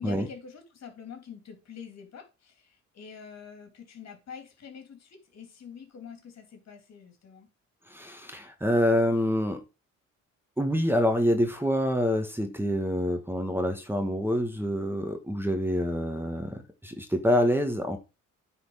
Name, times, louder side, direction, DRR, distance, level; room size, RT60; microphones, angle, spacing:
voice 1, 0.0-7.5, left 6 dB, 60° left, 3.1 m, -45 dB
voice 2, 7.9-9.6 10.6-18.0, equal, 5° right, 1.6 m, -26 dB
9.5 x 4.4 x 5.5 m
cardioid pair, 90°, 30 cm